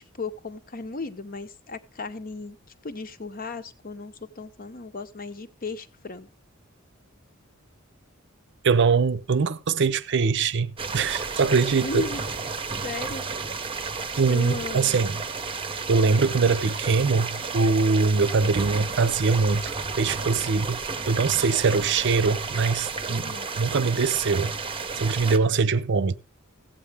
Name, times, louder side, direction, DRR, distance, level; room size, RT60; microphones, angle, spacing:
voice 1, 0.0-2.6 2.8-6.3 11.8-12.3 12.8-13.2 14.3-15.0 23.1-23.5, left 3 dB, 45° left, 0.9 m, -36 dB
voice 2, 8.6-12.1 14.2-15.2 15.9-24.5 25.0-26.2, right 4 dB, 60° right, 0.6 m, -23 dB
sound 1, 10.8-25.4, right 4 dB, 25° right, 0.7 m, -32 dB
15.5 x 8.4 x 3.4 m
head